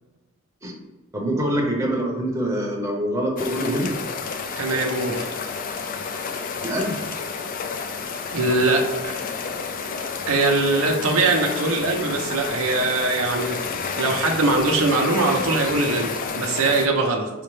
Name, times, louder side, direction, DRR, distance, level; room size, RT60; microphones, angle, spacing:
voice 1, 1.1-3.9 6.6-7.0, equal, 15° right, -2 dB, 0.7 m, -24 dB
sound 1, 3.4-16.9, left 5 dB, 40° left, 0.3 m, -30 dB
voice 2, 4.6-5.3 8.3-9.2 10.3-13.6 14.0-17.3, right 3 dB, 75° right, 1 dB, 0.6 m, -22 dB
4.9 x 2.1 x 3.1 m, 1.2 s
head